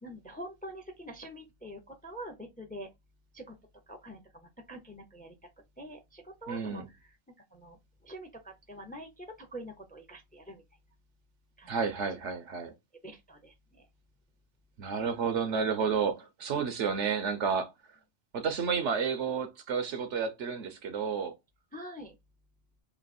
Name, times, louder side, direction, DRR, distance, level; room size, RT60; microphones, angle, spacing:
voice 1, 0.0-2.9 3.3-3.6 3.9-5.3 5.8-7.1 7.5-10.6 11.6-11.7 13.0-13.9 21.7-22.1, right 1 dB, 10° left, 0.6 m, -45 dB
voice 2, 6.5-6.9 11.7-12.7 14.8-17.7 18.3-21.3, right 6 dB, 65° right, 1.0 m, -31 dB
3.2 x 2.8 x 4.2 m
omnidirectional pair, 1.3 m